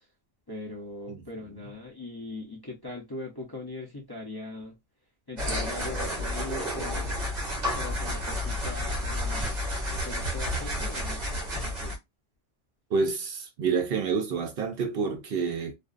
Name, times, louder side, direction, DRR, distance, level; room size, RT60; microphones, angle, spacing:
voice 1, 0.5-4.8 5.3-7.2 7.7-9.6 10.0-11.2 11.6-12.0, left 2 dB, 25° left, 0.5 m, -40 dB
sound 1, 5.4-12.0, left 1 dB, 40° right, 1.0 m, -31 dB
voice 2, 12.9-15.7, right 5 dB, 60° right, 0.7 m, -28 dB
2.5 x 2.3 x 2.4 m
omnidirectional pair, 1.3 m